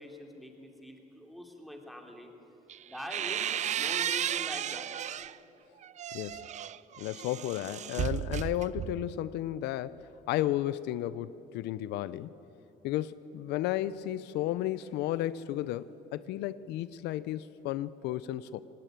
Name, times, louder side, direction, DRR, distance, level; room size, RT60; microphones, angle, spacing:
voice 1, 0.0-2.3 2.9-4.9, equal, ahead, 2 dB, 2.9 m, -44 dB
sound 1, 2.7-5.4 5.8-9.2, right 10 dB, 45° right, 0.5 m, -34 dB
voice 2, 6.1-6.5 7.0-12.3 12.8-18.6, left 13 dB, 85° left, 17 dB, 0.5 m, -33 dB
18.5 x 18.5 x 8.9 m, 3.0 s
cardioid pair, 110°, 17 cm